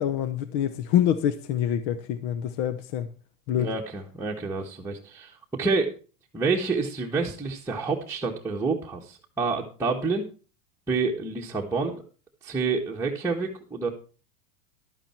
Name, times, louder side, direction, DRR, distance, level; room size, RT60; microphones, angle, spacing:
voice 1, 0.0-3.1 3.5-3.7, left 10 dB, 50° left, 1.0 m, -26 dB
voice 2, 3.6-5.9 6.3-10.3 10.9-12.0 12.4-13.9, right 4 dB, 5° right, 1.5 m, -28 dB
12.0 x 8.9 x 4.5 m
supercardioid pair, 120°, 45 cm